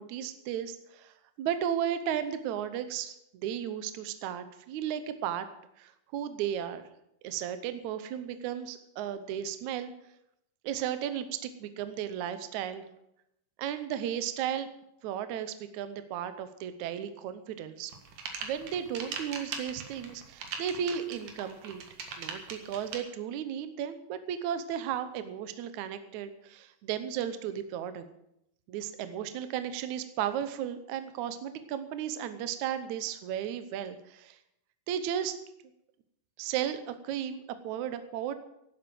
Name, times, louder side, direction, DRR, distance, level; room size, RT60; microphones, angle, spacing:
voice 1, 0.0-5.5 5.8-6.9 7.2-9.9 10.6-12.9 13.6-14.7 15.0-17.9 18.4-21.8 22.2-28.0 28.7-34.4 34.9-35.4 36.4-38.3, right 9 dB, 70° right, 11 dB, 2.1 m, -34 dB
sound 1, 17.9-23.0, right 5 dB, 90° right, 3.5 m, -39 dB
11.5 x 10.5 x 7.5 m, 0.80 s
omnidirectional pair, 3.7 m